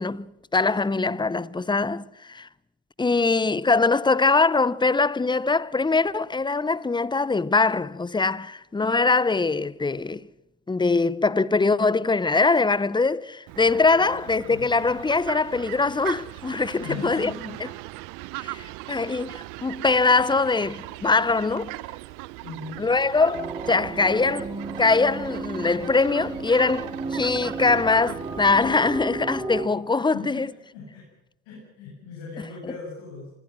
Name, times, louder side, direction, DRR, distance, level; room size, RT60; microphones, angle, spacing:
voice 1, 0.0-2.5 3.0-10.3 10.7-17.3 18.4-21.8 22.8-24.5 24.8-30.5, left 3 dB, 15° left, 0.7 m, -22 dB
Fowl, 13.5-29.0, right 21 dB, 70° right, 0.8 m, -39 dB
voice 2, 14.0-14.7 16.8-17.6 22.4-22.8 30.1-31.0 31.5-33.3, left 4 dB, 75° left, 7.5 m, -39 dB
sound 1, 23.3-29.7, right 3 dB, 15° right, 4.0 m, -34 dB
27.0 x 21.0 x 6.2 m
hypercardioid pair, 55°, 33 cm